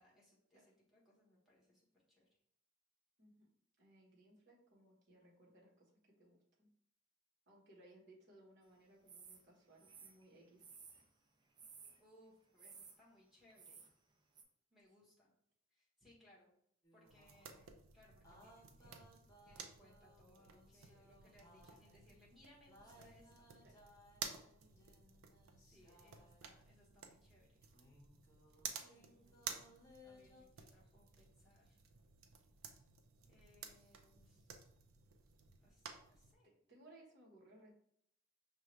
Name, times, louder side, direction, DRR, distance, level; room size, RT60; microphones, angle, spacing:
voice 1, 0.0-2.3 12.0-13.9 14.7-15.3 15.7-16.5 16.9-19.0 19.4-23.5 25.6-27.6 28.9-31.8 33.3-34.5 35.6-36.5, left 1 dB, ahead, -6 dB, 1.3 m, -68 dB
voice 2, 3.8-6.7 7.5-10.7 23.6-23.7 36.7-37.7, right 1 dB, 55° right, -3 dB, 1.2 m, -64 dB
sound 1, 9.1-9.4 9.8-11.1 11.6-12.0 12.6-13.0 13.5-13.9 14.3-14.4, right 5 dB, 20° right, 0.4 m, -57 dB
sound 2, 16.8-17.7 18.2-22.2 22.7-26.6 27.6-30.4, left 1 dB, 20° left, 0.9 m, -65 dB
sound 3, 17.0-36.3, right 6 dB, 85° right, 0.5 m, -54 dB
5.5 x 2.4 x 3.2 m, 0.72 s
head